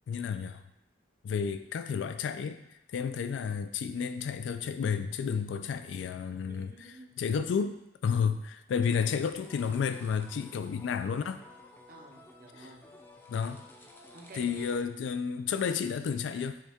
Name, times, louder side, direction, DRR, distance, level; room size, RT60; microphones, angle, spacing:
voice 1, 0.1-0.6 1.2-2.6 2.9-6.7 7.2-7.8 8.0-11.4 12.6-12.7 13.3-13.6 14.3-16.6, left 6 dB, 80° left, 10 dB, 0.3 m, -31 dB
voice 2, 6.4-7.1 11.9-12.9 14.1-14.8, right 2 dB, 50° right, 2 dB, 0.7 m, -51 dB
sound 1, 9.4-14.8, left 2 dB, 10° left, 0.4 m, -54 dB
6.4 x 2.3 x 3.5 m, 0.87 s
head